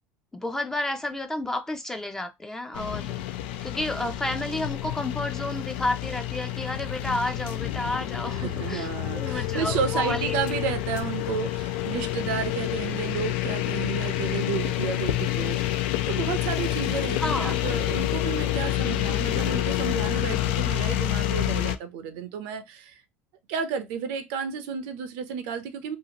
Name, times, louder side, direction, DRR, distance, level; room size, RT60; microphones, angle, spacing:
voice 1, 0.3-3.1 3.6-10.4 17.2-17.6, left 1 dB, 10° left, 0.4 m, -31 dB
sound 1, 2.7-21.8, left 14 dB, 90° left, 0.4 m, -28 dB
voice 2, 8.4-23.0 23.5-26.0, right 7 dB, 75° right, 0.6 m, -32 dB
2.7 x 2.5 x 2.8 m
cardioid pair, 140°, 6 cm